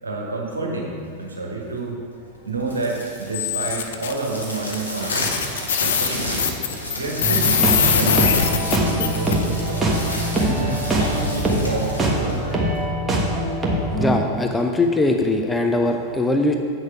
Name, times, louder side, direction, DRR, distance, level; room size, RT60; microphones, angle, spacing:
voice 1, 0.0-2.0 2.4-6.6 6.9-8.4 8.8-9.4 10.3-12.6, right 3 dB, 75° right, -1 dB, 1.4 m, -29 dB
sound 1, 2.6-12.9, left 1 dB, 85° left, 1.5 m, -30 dB
sound 2, 3.3-4.1 4.7-4.8 5.1-9.3, left 9 dB, 60° left, 0.5 m, -22 dB
sound 3, 7.2-14.2, right 1 dB, 15° right, 1.3 m, -23 dB
voice 2, 14.0-16.5, left 2 dB, 10° left, 4 dB, 0.5 m, -21 dB
8.3 x 6.5 x 4.8 m, 2.5 s
figure-of-eight pair, 90°, 0 cm